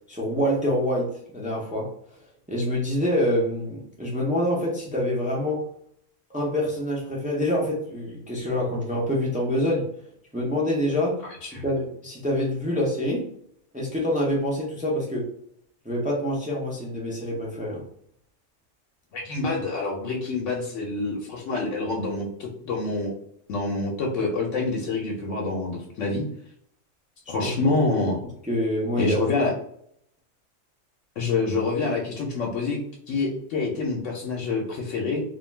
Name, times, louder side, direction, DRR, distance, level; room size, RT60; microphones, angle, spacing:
voice 1, 0.1-1.9 2.5-5.6 6.3-9.9 10.3-11.2 11.5-13.3 13.7-15.3 15.8-17.8 27.3-27.5 28.4-29.2, equal, 15° right, -3 dB, 0.3 m, -26 dB
voice 2, 19.1-23.1 23.5-26.3 27.3-28.2 29.0-29.5 31.2-32.8 33.1-35.2, left 3 dB, 80° left, -1 dB, 0.9 m, -26 dB
2.3 x 2.2 x 3.1 m, 0.68 s
omnidirectional pair, 1.3 m